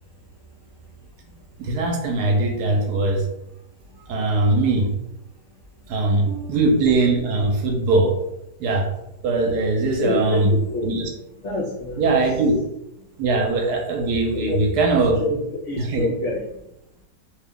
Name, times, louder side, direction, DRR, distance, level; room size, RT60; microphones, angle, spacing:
voice 1, 1.6-3.2 4.1-4.9 5.9-8.1 8.6-8.9 9.2-10.5 10.8-11.1 12.0-12.5 13.2-15.2 15.8-16.1, right 2 dB, 70° right, 2 dB, 1.1 m, -21 dB
voice 2, 10.0-10.9 11.4-12.2 14.3-14.6 15.2-15.4 15.7-16.4, left 2 dB, 80° left, -3 dB, 0.6 m, -27 dB
3.1 x 2.3 x 3.5 m, 0.85 s
omnidirectional pair, 1.9 m